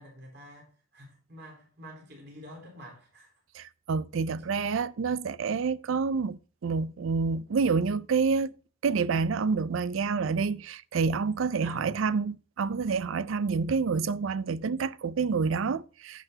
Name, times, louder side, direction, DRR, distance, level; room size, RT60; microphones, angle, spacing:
voice 1, 0.0-3.3 11.6-11.9, equal, 55° right, 4.0 m, -48 dB
voice 2, 3.5-8.5 8.8-16.2, right 5 dB, 75° right, 0.4 m, -28 dB
14.5 x 5.9 x 2.8 m
head